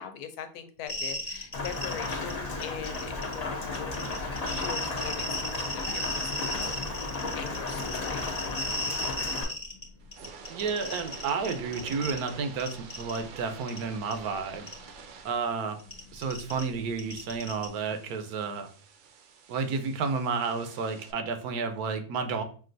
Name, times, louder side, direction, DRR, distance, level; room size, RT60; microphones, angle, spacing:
voice 1, 0.0-6.9 7.4-8.3 8.9-9.6, left 8 dB, 85° left, 8 dB, 1.1 m, -42 dB
sound 1, 0.9-2.3 2.6-3.3 3.7-9.8 10.1-12.3 12.6-13.2 13.7-13.8 14.1-14.2 14.7-14.8 15.8-17.6, left 1 dB, 20° left, 1.1 m, -34 dB
Rain, 1.5-9.4, left 3 dB, 40° left, 0.5 m, -34 dB
sound 2, 10.0-21.1, right 5 dB, 65° right, 0.8 m, -48 dB
voice 2, 10.5-14.7 15.2-15.8 16.1-18.7 19.5-22.4, right 5 dB, 85° right, 7 dB, 1.2 m, -31 dB
5.9 x 2.4 x 2.5 m, 0.43 s
omnidirectional pair, 1.6 m